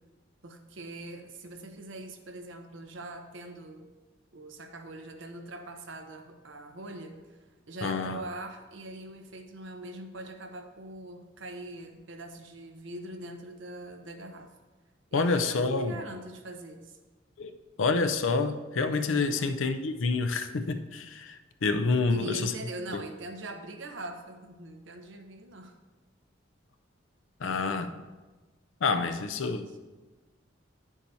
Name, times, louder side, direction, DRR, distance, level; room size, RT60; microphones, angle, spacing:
voice 1, 0.4-3.9 4.3-14.5 15.1-17.0 19.3-19.5 22.1-25.8 29.3-29.6, right 2 dB, 70° right, 5 dB, 0.8 m, -42 dB
voice 2, 7.8-8.2 15.1-16.0 17.4-17.5 17.8-22.5 22.9-23.0 27.4-28.0 28.8-29.8, left 4 dB, 80° left, 9 dB, 0.5 m, -28 dB
9.4 x 7.2 x 2.8 m, 1.2 s
head